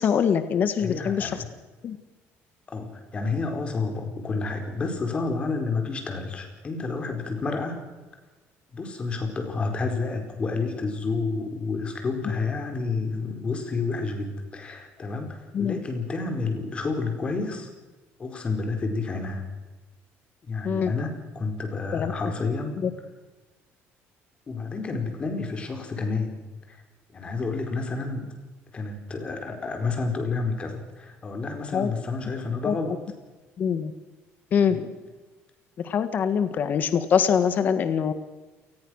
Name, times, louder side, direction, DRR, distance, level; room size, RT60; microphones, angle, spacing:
voice 1, 0.0-1.3 1.8-2.0 15.5-15.8 20.6-20.9 21.9-22.1 22.8-22.9 31.7-31.9 32.6-32.8 33.6-33.9 34.5-34.8 35.8-38.1, left 7 dB, 40° left, 10 dB, 1.6 m, -23 dB
voice 2, 0.8-1.5 2.7-7.8 8.7-17.7 18.2-19.5 20.4-22.8 24.5-26.4 26.7-26.8 27.1-28.3 28.7-32.9 34.7-34.9, left 4 dB, 25° left, 5 dB, 4.6 m, -30 dB
28.5 x 20.0 x 6.5 m, 1.2 s
cardioid pair, 170°, 5 cm